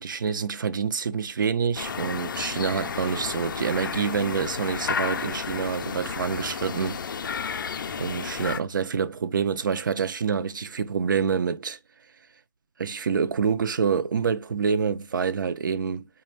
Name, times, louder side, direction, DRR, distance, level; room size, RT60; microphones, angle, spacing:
voice 1, 0.0-7.2 8.0-11.8 12.8-16.1, right 6 dB, 80° right, 0.4 m, -27 dB
sound 1, 1.8-8.6, left 6 dB, 85° left, 0.4 m, -32 dB
4.0 x 2.2 x 3.1 m
hypercardioid pair, 175°, 11 cm